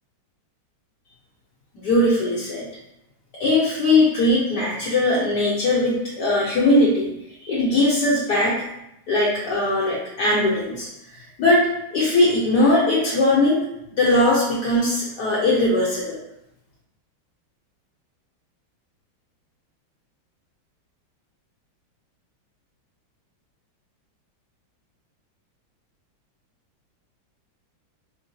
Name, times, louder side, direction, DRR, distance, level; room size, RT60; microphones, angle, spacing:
voice 1, 1.7-2.7 3.3-7.1 7.4-8.6 9.1-10.9 11.1-11.7 11.9-13.6 14.0-16.2, left 2 dB, 65° left, -7 dB, 1.2 m, -20 dB
4.5 x 2.2 x 2.6 m, 0.84 s
omnidirectional pair, 2.2 m